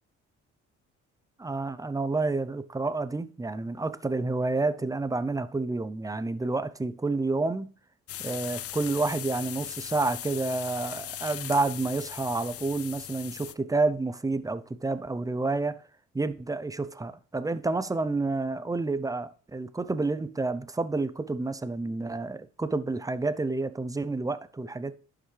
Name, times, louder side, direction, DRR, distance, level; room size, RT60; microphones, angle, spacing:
voice 1, 1.4-7.7 8.2-15.8 16.1-25.0, right 3 dB, 10° right, 0.5 m, -29 dB
sound 1, 8.1-13.5, left 12 dB, 50° left, 0.4 m, -39 dB
11.0 x 5.8 x 3.3 m
cardioid pair, 90°, 30 cm